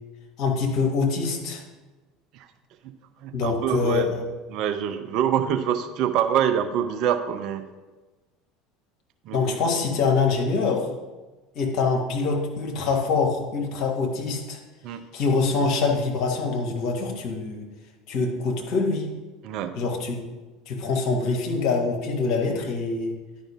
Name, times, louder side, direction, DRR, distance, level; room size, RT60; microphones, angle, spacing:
voice 1, 0.4-1.6 3.3-4.2 9.3-10.9 11.5-14.6 15.1-17.6 18.1-19.1 19.8-20.2 20.7-23.1, left 4 dB, 50° left, 1 dB, 1.5 m, -24 dB
voice 2, 3.2-4.1 4.5-7.7 9.3-9.6 14.8-15.0 19.4-19.8, right 9 dB, 50° right, 8 dB, 0.5 m, -25 dB
10.0 x 5.1 x 3.6 m, 1.2 s
figure-of-eight pair, 70°, 0 cm